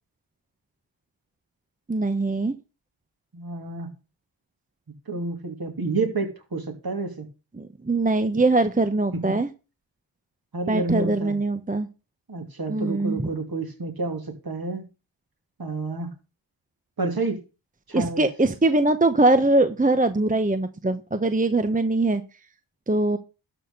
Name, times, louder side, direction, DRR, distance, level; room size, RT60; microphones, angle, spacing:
voice 1, 1.9-2.5 7.6-9.5 10.7-11.9 12.7-13.2 17.9-22.2 22.9-23.2, right 2 dB, 15° right, 10 dB, 0.9 m, -22 dB
voice 2, 3.3-3.9 5.1-7.3 9.2-9.3 10.5-11.4 12.3-14.8 15.6-16.1 17.0-17.4 17.9-18.3, right 3 dB, 45° right, 5 dB, 2.7 m, -29 dB
12.0 x 4.3 x 6.7 m, 0.32 s
cardioid pair, 50°, 48 cm